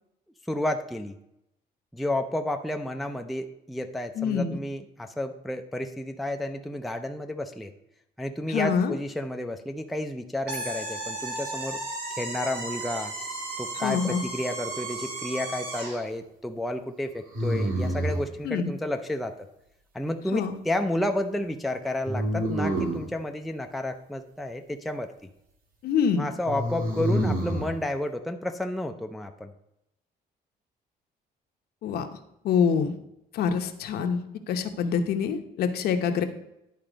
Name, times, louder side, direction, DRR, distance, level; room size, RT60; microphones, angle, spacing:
voice 1, 0.5-1.1 1.9-7.7 8.2-11.8 12.1-13.1 13.6-19.3 19.9-25.1 26.2-29.5, left 1 dB, ahead, 5 dB, 0.4 m, -31 dB
voice 2, 4.1-4.6 8.5-8.9 13.8-14.2 18.4-18.7 20.3-20.6 25.8-26.3 31.8-32.1 32.4-33.0 33.3-36.3, left 6 dB, 65° left, 7 dB, 0.8 m, -26 dB
sound 1, 10.5-16.0, right 2 dB, 90° right, 2.6 m, -35 dB
sound 2, 14.6-15.3 17.3-18.3 22.1-23.1 26.4-27.7, equal, 55° right, 1.8 m, -28 dB
10.5 x 4.3 x 5.0 m, 0.83 s
cardioid pair, 160°, 17 cm